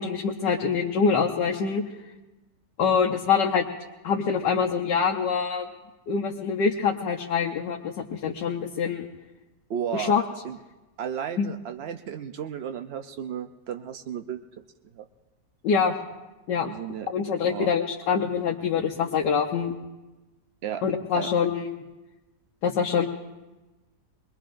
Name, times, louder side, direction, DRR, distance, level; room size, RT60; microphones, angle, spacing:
voice 1, 0.0-1.8 2.8-3.6 4.0-5.7 6.1-9.1 9.9-10.2 11.4-11.5 15.6-15.9 16.5-16.7 17.1-19.7 20.8-21.7 22.6-23.1, left 6 dB, 90° left, 0 dB, 1.5 m, -25 dB
voice 2, 9.7-10.2 10.4-10.6 11.0-14.4 14.9-15.0 16.6-17.1 17.4-17.7 20.6-20.8 21.2-21.3, right 9 dB, 85° right, 7 dB, 0.5 m, -33 dB
23.5 x 21.0 x 2.5 m, 1.1 s
omnidirectional pair, 1.8 m